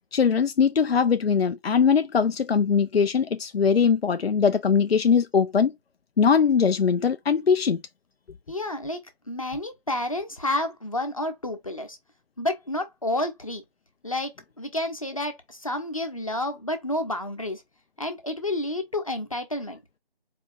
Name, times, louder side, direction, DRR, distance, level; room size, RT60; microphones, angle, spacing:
voice 1, 0.1-5.7 6.2-7.8, left 6 dB, 80° left, 0.5 m, -21 dB
voice 2, 8.5-12.0 12.4-13.6 14.0-17.6 18.0-19.8, left 1 dB, 35° left, 0.8 m, -30 dB
4.2 x 2.9 x 3.5 m
figure-of-eight pair, 165°, 31 cm